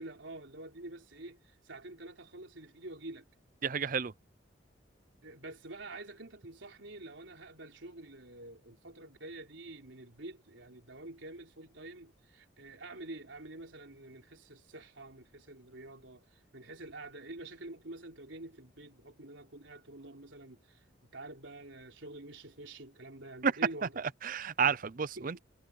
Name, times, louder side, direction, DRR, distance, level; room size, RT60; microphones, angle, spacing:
voice 1, 0.0-3.3 5.2-20.9 21.1-23.9 25.2-25.3, right 2 dB, 75° right, 3.7 m, -47 dB
voice 2, 3.6-4.1 23.4-23.5 24.2-25.4, right 6 dB, 45° right, 0.5 m, -30 dB
head